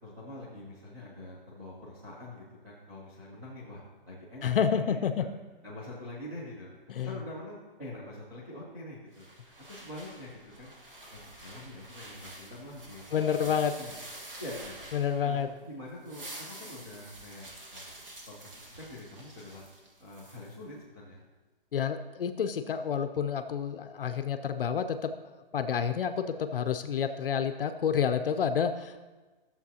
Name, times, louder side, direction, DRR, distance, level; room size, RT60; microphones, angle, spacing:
voice 1, 0.0-5.3 5.6-6.7 7.0-10.7 11.1-13.9 14.4-14.8 15.2-17.9 18.3-19.7 20.0-21.2, left 1 dB, 10° right, -9 dB, 0.7 m, -45 dB
voice 2, 4.4-5.3 6.9-7.1 13.1-13.7 14.9-15.5 21.7-25.1 25.5-29.0, left 7 dB, 70° left, 8 dB, 0.5 m, -29 dB
sound 1, 9.1-15.5 15.9-20.6, right 1 dB, 65° right, 2.0 m, -48 dB
11.5 x 7.1 x 2.8 m, 1.3 s
hypercardioid pair, 180°, 29 cm